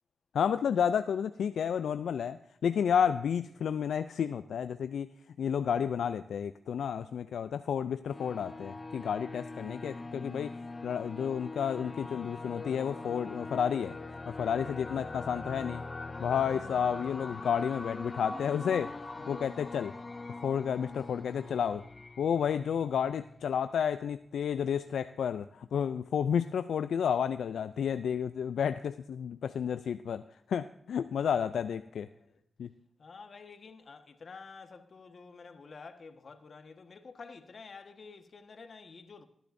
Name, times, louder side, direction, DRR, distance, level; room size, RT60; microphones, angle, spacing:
voice 1, 0.3-5.1 5.4-10.5 10.8-13.9 14.3-15.8 16.2-18.9 19.3-19.9 20.4-21.8 22.2-30.2 30.5-32.1 32.6-32.7, left 8 dB, 85° left, 0.3 m, -31 dB
sound 1, 8.1-23.4, left 3 dB, 35° left, 1.0 m, -42 dB
voice 2, 32.1-32.4 33.0-39.3, left 4 dB, 60° left, 1.3 m, -50 dB
19.0 x 10.0 x 2.6 m
cardioid pair, 60°, 0 cm